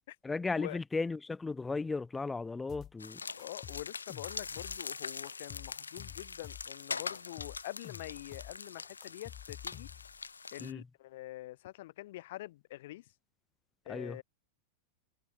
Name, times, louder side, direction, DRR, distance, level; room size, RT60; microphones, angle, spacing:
voice 1, 0.2-3.2 10.6-10.8 13.9-14.2, left 3 dB, 10° left, 0.4 m, -35 dB
sound 1, 2.7-3.1 3.4-5.0 5.3-6.8 7.1-10.2, left 12 dB, 30° left, 6.1 m, -50 dB
sound 2, 3.0-10.7, left 5 dB, 75° left, 3.3 m, -43 dB
voice 2, 3.4-9.9 10.5-13.0 13.8-14.2, left 16 dB, 55° left, 4.7 m, -45 dB
figure-of-eight pair, 90°, 0 cm